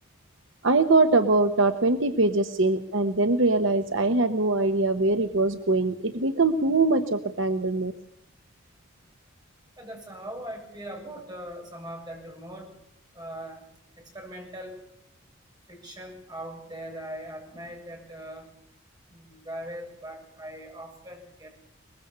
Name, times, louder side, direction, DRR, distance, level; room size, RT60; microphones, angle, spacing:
voice 1, 0.6-7.9, right 2 dB, 60° right, 8 dB, 1.0 m, -22 dB
voice 2, 9.8-12.7 13.1-13.6 14.0-14.8 15.7-18.5 19.1-21.5, right 1 dB, 20° right, 1 dB, 6.9 m, -40 dB
23.0 x 21.0 x 6.9 m, 0.76 s
head